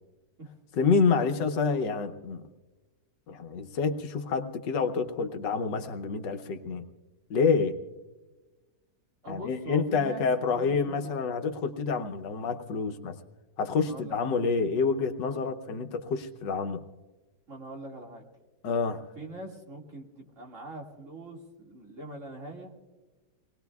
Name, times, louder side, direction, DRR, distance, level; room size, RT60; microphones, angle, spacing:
voice 1, 0.7-2.4 3.3-6.8 7.3-7.8 9.3-13.2 13.6-16.8 18.6-19.0, left 5 dB, 90° left, 7 dB, 1.6 m, -28 dB
voice 2, 9.2-10.2 10.5-11.2 13.8-14.4 15.3-15.4 17.5-18.2 19.2-22.9, right 1 dB, 45° right, -1 dB, 2.5 m, -43 dB
25.5 x 20.0 x 2.3 m, 1.2 s
omnidirectional pair, 1.8 m